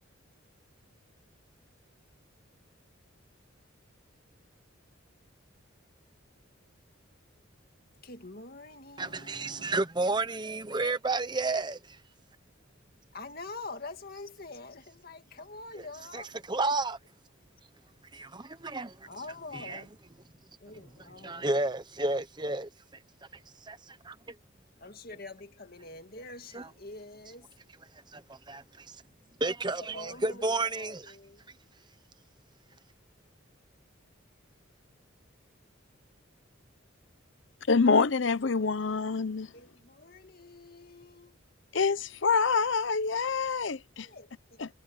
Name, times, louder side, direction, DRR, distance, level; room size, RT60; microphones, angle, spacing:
voice 1, 8.0-9.7 13.1-16.3 16.7-16.8 19.1-19.9 20.6-21.8 24.8-27.5 29.9-31.4 39.5-41.4 44.0-44.7, left 3 dB, 45° left, 2.1 m, -46 dB
voice 2, 9.0-12.0 16.1-17.0 18.1-19.1 19.5-19.8 21.2-22.7 23.6-24.3 26.5-26.7 28.1-29.0 29.4-31.1, right 2 dB, 20° right, 1.0 m, -31 dB
voice 3, 37.7-39.5 41.7-44.1 44.6-44.7, left 4 dB, 65° left, 0.7 m, -26 dB
head